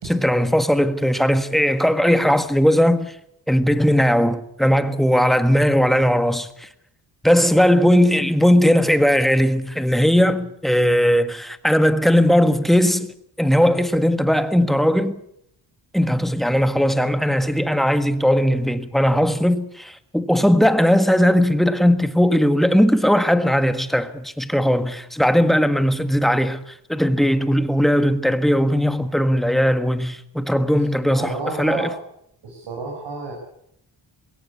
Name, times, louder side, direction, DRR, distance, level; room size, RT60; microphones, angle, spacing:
voice 1, 0.0-3.1 3.5-6.7 7.2-13.1 13.4-15.2 15.9-31.9, equal, ahead, 1.5 m, -18 dB
voice 2, 31.1-31.9 32.4-33.3, right 4 dB, 75° right, 5.8 m, -30 dB
21.0 x 17.5 x 8.5 m
cardioid pair, 95°, 45 cm